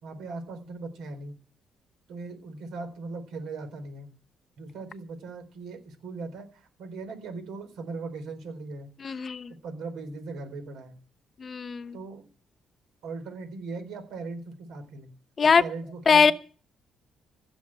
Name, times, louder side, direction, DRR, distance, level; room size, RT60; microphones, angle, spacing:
voice 1, 0.0-1.3 2.1-4.1 4.6-8.9 9.6-11.0 11.9-12.3 13.0-15.1 15.6-16.3, right 3 dB, 85° right, 4.2 m, -39 dB
voice 2, 9.0-9.5 11.4-12.0 15.4-15.6 16.1-16.3, left 5 dB, 40° left, 0.9 m, -21 dB
16.0 x 6.4 x 8.9 m
cardioid pair, 90°, 0 cm